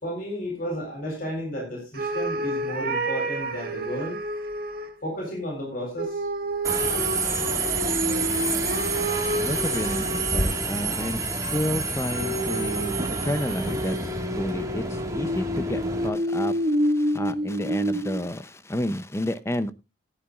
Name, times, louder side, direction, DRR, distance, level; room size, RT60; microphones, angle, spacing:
voice 1, 0.0-4.2 5.0-6.3, equal, 50° left, 4.0 m, -32 dB
sound 1, 1.9-4.9 6.0-10.7 12.2-18.3, right 1 dB, 55° right, 1.6 m, -29 dB
Subway metro underground, 6.6-16.1, right 3 dB, 20° right, 1.6 m, -28 dB
voice 2, 9.4-14.0 14.3-19.7, left 1 dB, 15° left, 0.5 m, -30 dB
17.0 x 10.5 x 2.4 m
head